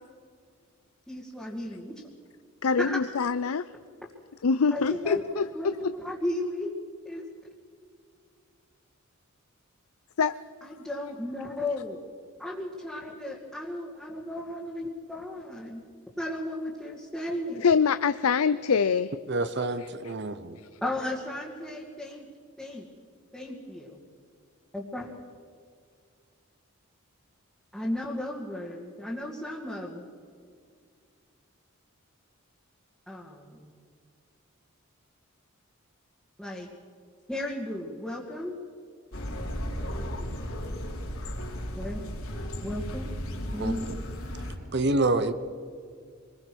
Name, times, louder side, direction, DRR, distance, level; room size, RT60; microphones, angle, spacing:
voice 1, 1.1-1.9 2.8-3.0 4.7-6.7 7.1-7.2 10.6-12.0 12.4-15.8 16.2-17.7 20.8-22.3 22.6-22.9 23.3-24.0 24.7-25.1 27.7-30.1 33.1-33.7 36.4-36.7 37.3-38.6 40.0-40.5 41.8-42.0 42.6-43.1 43.5-43.9, left 1 dB, ahead, -5 dB, 2.3 m, -35 dB
voice 2, 2.6-3.6 4.4-5.9 10.2-10.4 17.6-19.1, left 5 dB, 85° left, 13 dB, 0.5 m, -24 dB
voice 3, 19.3-20.6 43.6-44.0 44.7-45.3, right 2 dB, 50° right, 11 dB, 1.0 m, -27 dB
sound 1, 39.1-44.6, equal, 70° left, 4.1 m, -35 dB
26.5 x 21.0 x 6.2 m, 2.2 s
head